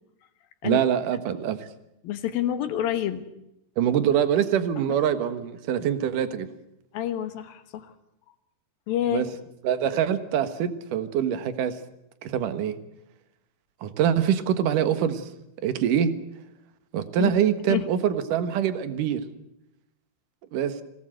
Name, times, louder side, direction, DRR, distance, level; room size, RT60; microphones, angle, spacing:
voice 1, 0.6-1.6 3.8-6.5 9.1-9.3 9.6-11.8 12.2-12.8 13.8-15.3 15.6-16.1 16.9-19.2 20.5-20.8, right 9 dB, 60° right, 10 dB, 2.4 m, -24 dB
voice 2, 2.0-3.3 6.9-7.9 8.9-9.2 17.2-17.3 17.7-17.9, left 11 dB, 65° left, 9 dB, 2.6 m, -27 dB
25.0 x 18.0 x 8.0 m, 0.86 s
omnidirectional pair, 5.4 m